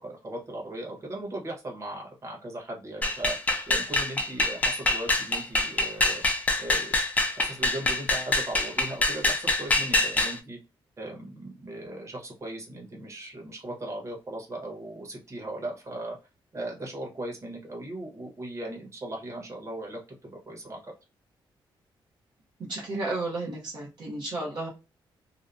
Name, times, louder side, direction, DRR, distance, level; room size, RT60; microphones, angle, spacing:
voice 1, 0.0-3.4 3.7-6.2 6.6-6.9 7.3-10.6 11.0-16.2 16.5-20.9, right 1 dB, 30° right, -1 dB, 1.1 m, -38 dB
sound 1, 3.0-10.4, left 2 dB, 15° left, 0.5 m, -25 dB
voice 2, 22.7-24.7, right 2 dB, 55° right, -4 dB, 0.8 m, -32 dB
2.7 x 2.1 x 2.5 m, 0.28 s
wide cardioid pair, 145°, 9 cm